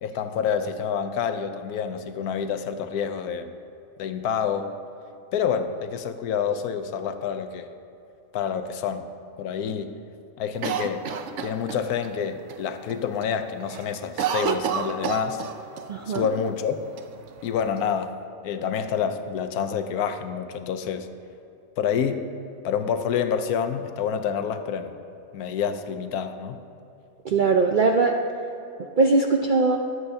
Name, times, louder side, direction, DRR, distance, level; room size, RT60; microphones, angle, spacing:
voice 1, 0.0-3.5 4.0-4.7 5.3-7.7 8.3-9.1 9.4-10.0 10.4-11.1 11.4-15.4 16.1-16.8 17.4-18.1 18.4-21.1 21.8-22.3 22.6-25.0 25.3-26.6, left 7 dB, 85° left, 9 dB, 1.2 m, -28 dB
Cough, 10.6-12.1 12.5-12.6 12.9-13.3 13.6-15.9 16.1-16.2 17.0-17.8, right 7 dB, 65° right, 0.9 m, -29 dB
voice 2, 15.9-16.3 27.2-28.1 29.0-29.8, right 3 dB, 85° right, 3 dB, 0.4 m, -20 dB
20.0 x 7.9 x 2.8 m, 2.7 s
omnidirectional pair, 1.6 m